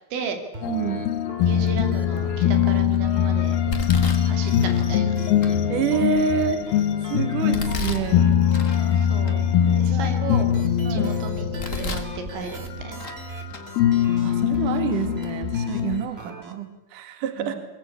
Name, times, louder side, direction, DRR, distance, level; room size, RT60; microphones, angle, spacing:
sound 1, 0.5-16.5, right 2 dB, 20° right, 1.9 m, -38 dB
sound 2, 0.6-13.5 13.7-16.0, left 9 dB, 70° left, 3.0 m, -22 dB
voice 1, 0.7-1.0 5.7-6.6 7.1-8.2 9.6-10.1 10.8-11.1 14.2-17.6, right 7 dB, 55° right, 8 dB, 3.2 m, -27 dB
voice 2, 1.4-3.6 4.3-5.2 9.0-9.4 9.8-10.5 10.9-13.4 17.4-17.6, right 5 dB, 85° right, 6 dB, 5.1 m, -34 dB
Domestic sounds home sounds, 1.6-2.0 2.5-3.0 3.7-4.9 5.4-5.5 6.1-6.9 7.5-8.8 9.2-9.3 9.9-10.9 11.4-12.1 12.5-13.2 13.5-13.6 14.5-14.6 15.2-15.3 15.7-15.9, left 2 dB, 30° left, 1.5 m, -34 dB
23.0 x 22.5 x 8.5 m, 0.96 s
omnidirectional pair, 5.1 m